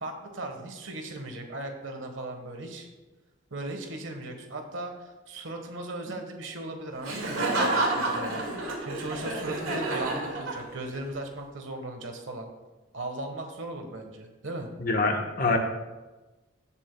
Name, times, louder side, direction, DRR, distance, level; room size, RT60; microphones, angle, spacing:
voice 1, 0.0-2.9 3.5-12.5 12.9-14.7, right 2 dB, 65° right, 4 dB, 1.3 m, -37 dB
Laughter, 7.0-11.0, right 2 dB, 85° right, 2.0 m, -29 dB
voice 2, 14.8-15.6, left 3 dB, 45° left, 3 dB, 1.1 m, -25 dB
17.0 x 7.2 x 2.3 m, 1.2 s
head